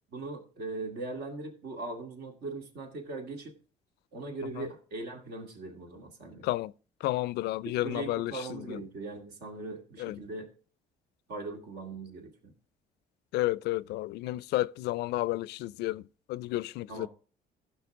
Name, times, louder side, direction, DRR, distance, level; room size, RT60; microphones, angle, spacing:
voice 1, 0.1-3.5 4.1-6.4 7.8-10.5 11.3-12.5 16.9-17.1, right 3 dB, 75° right, 2.3 m, -40 dB
voice 2, 7.0-8.8 10.0-10.2 13.3-16.0 16.3-17.1, left 17 dB, 75° left, 0.4 m, -31 dB
15.0 x 5.7 x 3.6 m
cardioid pair, 110°, 17 cm